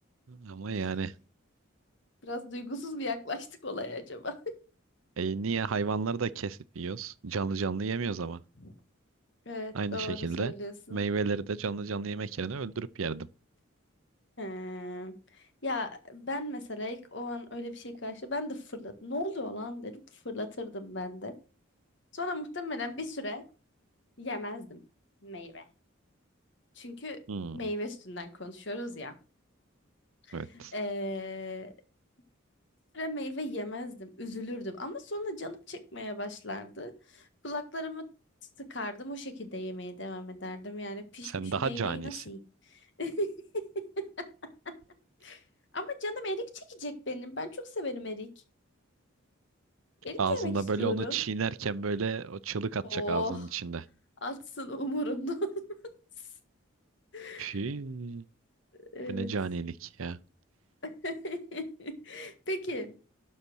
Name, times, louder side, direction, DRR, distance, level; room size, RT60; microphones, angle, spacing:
voice 1, 0.3-1.1 5.2-8.4 9.7-10.5 10.9-13.3 27.3-27.7 30.3-30.7 41.2-42.2 50.2-53.8 57.4-58.2 59.1-60.2, right 5 dB, 80° right, 0.6 m, -32 dB
voice 2, 2.2-4.4 8.6-8.7 9.4-11.0 14.4-21.3 22.1-23.4 24.2-24.8 25.2-25.6 26.7-27.2 27.5-29.1 30.3-31.7 32.9-38.0 38.6-42.4 42.7-44.3 44.6-44.7 45.2-45.4 45.7-48.3 50.0-51.2 52.8-53.5 54.2-56.0 57.1-57.6 58.8-59.3 60.8-62.9, left 1 dB, 55° left, 1.6 m, -37 dB
12.0 x 4.3 x 6.2 m
head